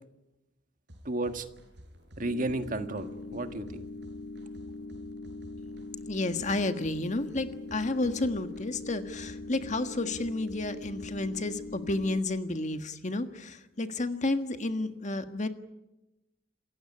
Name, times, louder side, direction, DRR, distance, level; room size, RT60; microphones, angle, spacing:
sound 1, 0.9-12.1, equal, 70° right, 5.7 m, -52 dB
voice 1, 1.1-1.5 2.2-3.8, right 2 dB, 50° right, 8 dB, 1.7 m, -33 dB
sound 2, 2.2-12.2, left 2 dB, 75° left, 1.3 m, -42 dB
voice 2, 6.0-15.5, left 2 dB, 40° left, 8 dB, 1.6 m, -31 dB
28.0 x 15.5 x 9.9 m, 0.99 s
head